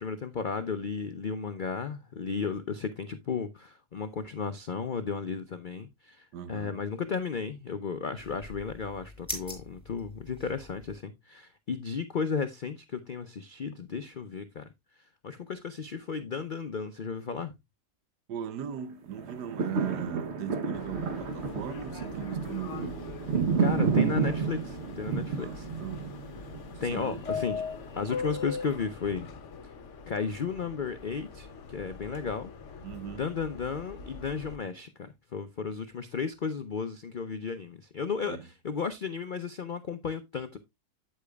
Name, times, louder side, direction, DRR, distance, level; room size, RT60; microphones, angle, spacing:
voice 1, 0.0-14.7 15.2-17.5 23.6-25.7 26.8-27.6 28.0-29.3 30.1-32.5 33.1-40.6, left 5 dB, 80° left, 0.4 m, -34 dB
voice 2, 6.3-6.8 18.3-23.8 25.4-26.3 26.8-27.2 32.8-33.2 38.2-38.5, right 9 dB, 80° right, 1.4 m, -39 dB
sound 1, 8.2-11.0, left 1 dB, 5° left, 4.7 m, -43 dB
sound 2, 19.2-27.4 27.9-28.0, right 5 dB, 45° right, 1.1 m, -31 dB
Subway metro underground, 20.7-34.6, left 5 dB, 50° left, 1.1 m, -41 dB
8.8 x 8.3 x 2.3 m
omnidirectional pair, 1.8 m